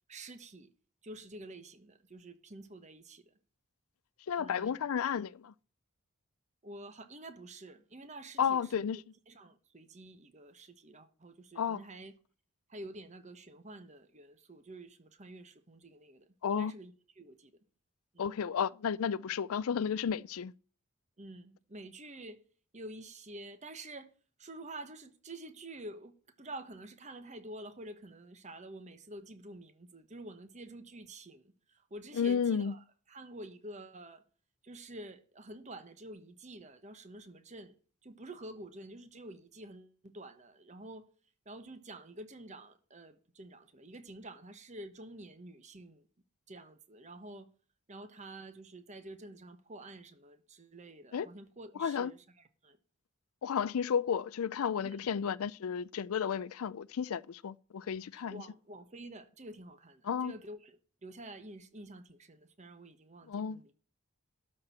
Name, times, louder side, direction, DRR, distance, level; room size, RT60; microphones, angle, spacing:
voice 1, 0.1-0.7 1.0-3.3 4.4-4.8 6.6-12.2 12.7-17.5 18.1-18.3 21.2-22.4 22.7-24.1 24.4-34.2 34.6-37.8 38.0-41.1 41.4-46.1 46.5-47.5 47.9-52.8 54.8-55.1 58.3-63.7, right 1 dB, 30° right, 1.1 m, -49 dB
voice 2, 4.3-5.5 8.4-9.0 11.6-11.8 16.4-16.7 18.2-20.5 32.2-32.7 51.1-51.3 51.8-52.1 53.4-58.4 60.1-60.3 63.3-63.6, left 7 dB, 75° left, 0.4 m, -32 dB
12.5 x 4.5 x 7.4 m
head